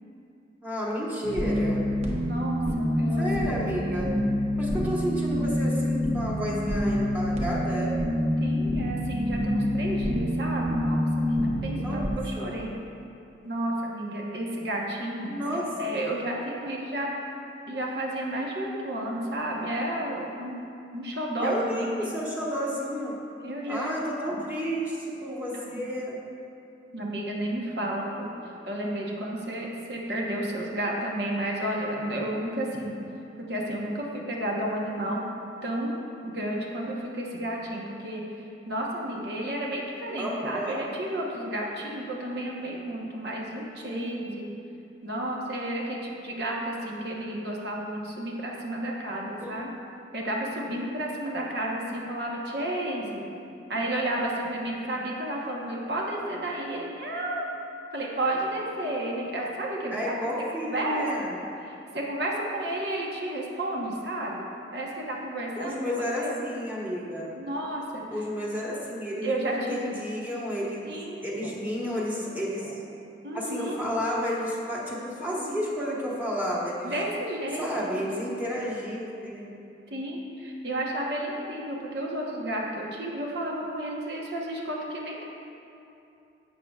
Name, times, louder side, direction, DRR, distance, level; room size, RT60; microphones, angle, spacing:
voice 1, 0.6-1.8 3.2-4.1 4.6-8.0 11.8-12.0 12.4-12.6 15.3-15.7 21.4-23.2 23.7-26.2 40.2-40.9 43.9-44.1 49.4-49.6 59.9-61.5 65.6-67.3 68.1-70.9 71.2-72.7 73.3-76.9 77.6-79.5, equal, 10° right, -5 dB, 1.2 m, -31 dB
sound 1, 1.2-12.1, equal, 35° right, 1.0 m, -27 dB
voice 2, 2.3-3.3 4.8-4.9 8.4-12.7 13.4-15.4 15.7-17.1 17.7-20.6 20.9-22.1 23.4-24.4 25.5-25.9 26.9-28.3 28.7-33.0 33.5-35.2 35.6-38.2 38.7-44.5 45.0-49.7 50.1-53.3 53.7-57.5 57.9-60.1 60.6-61.3 61.6-66.4 67.4-68.0 69.2-69.9 70.8-71.3 73.2-73.8 76.8-78.1 79.9-85.2, right 1 dB, 60° right, -2 dB, 1.1 m, -32 dB
11.5 x 7.9 x 2.4 m, 2.7 s
head